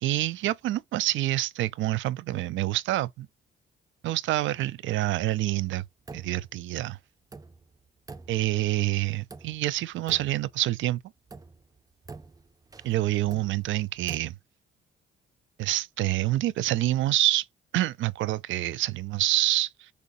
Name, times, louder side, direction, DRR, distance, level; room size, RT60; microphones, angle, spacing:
voice 1, 0.0-3.3 4.0-5.8 6.1-7.0 8.3-11.0 12.8-14.4 15.6-17.5 17.7-19.9, right 15 dB, 75° right, 0.4 m, -27 dB
sound 1, 5.8-6.6 6.8-6.9 7.3-8.8 9.3-9.8 10.1-10.8 11.3-14.2, right 3 dB, 20° right, 0.6 m, -46 dB
6.5 x 2.7 x 2.6 m
cardioid pair, 90°, 20 cm